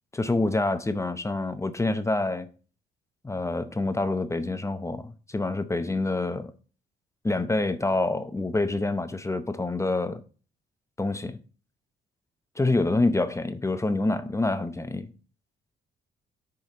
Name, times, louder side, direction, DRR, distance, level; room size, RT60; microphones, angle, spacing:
voice 1, 0.1-2.5 3.2-6.5 7.2-10.2 11.0-11.4 12.6-15.1, left 2 dB, 15° left, 0.7 m, -27 dB
7.3 x 5.0 x 3.7 m
cardioid pair, 90°, 20 cm